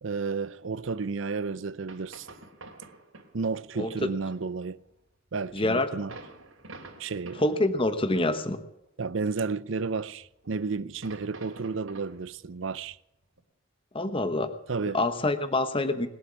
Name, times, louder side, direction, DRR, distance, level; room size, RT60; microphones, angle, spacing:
voice 1, 0.0-2.3 3.3-4.8 5.3-6.1 7.0-7.4 9.0-13.0 14.7-15.0, right 4 dB, 65° right, 0.6 m, -32 dB
sound 1, 1.6-1.7 1.9-3.3 3.6-3.8 4.2-7.8 8.1-8.5 9.2-9.9 10.2-13.4, right 3 dB, 85° right, 3.1 m, -49 dB
voice 2, 5.5-5.9 7.4-8.6 13.9-14.6 14.9-16.1, left 2 dB, 25° left, 1.0 m, -26 dB
21.0 x 7.9 x 8.6 m
head